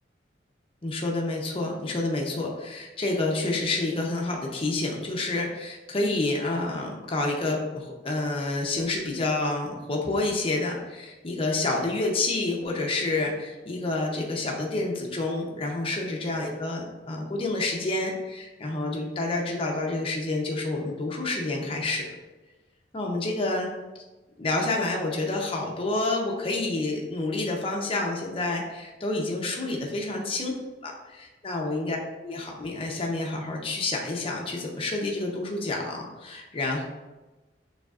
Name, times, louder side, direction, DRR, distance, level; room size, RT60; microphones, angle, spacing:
voice 1, 0.8-22.1 22.9-23.7 24.4-30.5 30.8-32.0 32.2-36.8, left 2 dB, 30° left, -1 dB, 0.7 m, -28 dB
6.5 x 3.3 x 2.4 m, 1.1 s
head